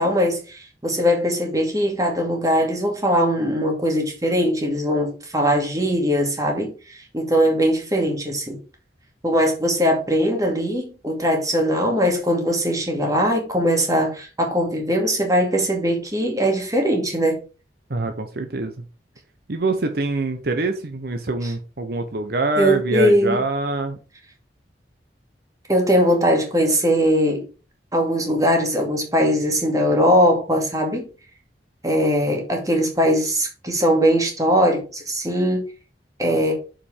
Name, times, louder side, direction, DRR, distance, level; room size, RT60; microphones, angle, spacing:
voice 1, 0.0-8.6 9.2-17.4 22.6-23.4 25.7-27.4 27.9-31.1 31.8-35.6 36.2-36.5, equal, 20° right, 2.3 m, -20 dB
voice 2, 17.9-18.8 19.5-24.0, right 3 dB, 60° right, 0.8 m, -24 dB
7.2 x 5.1 x 5.0 m
head